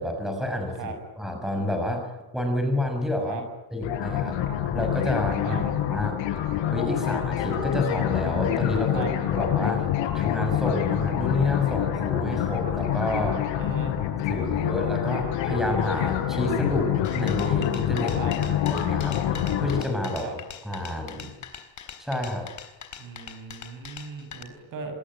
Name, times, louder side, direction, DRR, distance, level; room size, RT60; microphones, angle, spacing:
voice 1, 0.0-2.1 2.3-3.4 3.7-4.4 4.7-5.6 5.9-6.2 6.7-9.0 9.3-13.4 14.3-18.4 18.6-20.4 20.6-21.3 22.0-22.5, left 1 dB, ahead, 4 dB, 6.3 m, -29 dB
sound 1, 3.8-19.8, left 10 dB, 90° left, 6.1 m, -26 dB
voice 2, 13.6-14.0 18.1-18.3 20.2-20.3 23.0-24.9, right 5 dB, 45° right, 7 dB, 6.9 m, -37 dB
sound 2, 17.0-24.4, left 8 dB, 40° left, 4.0 m, -42 dB
26.0 x 21.0 x 9.9 m, 1.1 s
cardioid pair, 165°, 44 cm